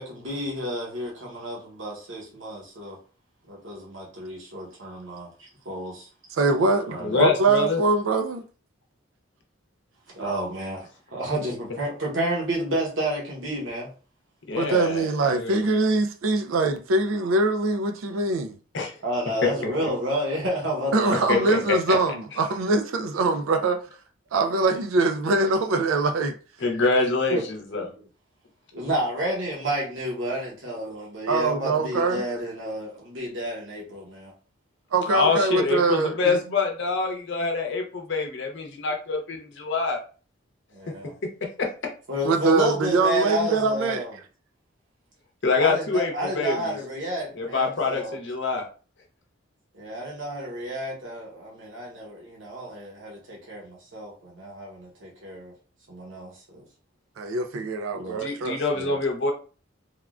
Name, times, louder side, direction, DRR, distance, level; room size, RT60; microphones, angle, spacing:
voice 1, 0.0-3.0 3.5-6.1 6.9-7.2 10.1-10.9 11.1-13.9 19.0-21.7 27.3-27.4 27.8-27.9 28.7-34.3 40.7-41.1 42.1-44.1 45.6-48.2 49.7-55.5 55.9-56.6 57.9-58.2 58.7-59.0, right 1 dB, 70° right, 1.0 m, -30 dB
voice 2, 6.3-8.4 14.5-18.6 20.9-23.8 24.3-26.4 31.3-32.2 34.9-36.4 42.2-44.0 57.2-58.9, right 3 dB, 85° right, 0.4 m, -23 dB
voice 3, 7.0-7.8 14.5-15.6 18.7-18.9 19.4-19.5 21.3-22.0 26.6-27.9 35.1-40.0 41.6-41.7 45.4-46.8 47.3-48.6 58.1-59.3, left 4 dB, 60° left, 0.7 m, -25 dB
3.5 x 2.2 x 2.4 m
head